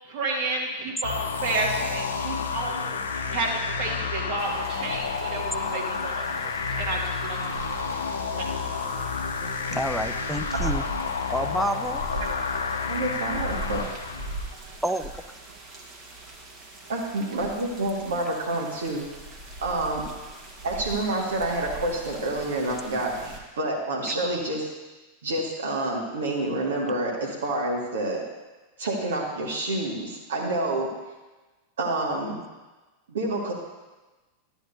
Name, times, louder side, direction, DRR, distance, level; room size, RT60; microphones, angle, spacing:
voice 1, 0.1-7.4 7.7-8.0 8.4-8.8, right 3 dB, 45° right, -2 dB, 1.9 m, -31 dB
sound 1, 1.0-14.5, left 5 dB, 65° left, 0.7 m, -30 dB
sound 2, 4.4-23.4, right 1 dB, 25° right, 1.5 m, -40 dB
voice 2, 9.7-10.8 11.3-12.0 14.8-15.1, equal, ahead, 8 dB, 0.4 m, -28 dB
voice 3, 12.9-13.9 16.9-19.1 19.6-20.0 20.6-24.7 25.2-28.2 28.8-30.9 31.8-32.4 33.1-33.5, right 2 dB, 65° right, -3 dB, 1.7 m, -28 dB
12.5 x 8.9 x 2.7 m, 1.2 s
figure-of-eight pair, 90°, 0 cm